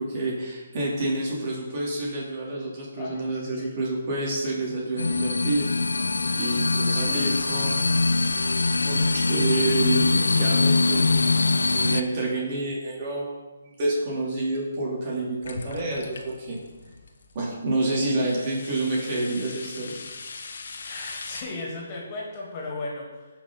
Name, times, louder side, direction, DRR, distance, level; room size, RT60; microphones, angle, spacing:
voice 1, 0.0-8.0 8.8-16.6 17.3-20.0, right 2 dB, 40° right, -4 dB, 3.4 m, -29 dB
voice 2, 3.0-3.7 20.8-23.3, left 2 dB, 35° left, -2 dB, 2.8 m, -36 dB
sound 1, 5.0-12.0, left 3 dB, 80° left, 0.5 m, -23 dB
sound 2, 15.4-17.4 17.9-21.4, left 4 dB, 60° left, 1.3 m, -40 dB
17.5 x 5.9 x 4.1 m, 1.2 s
figure-of-eight pair, 145°, 0 cm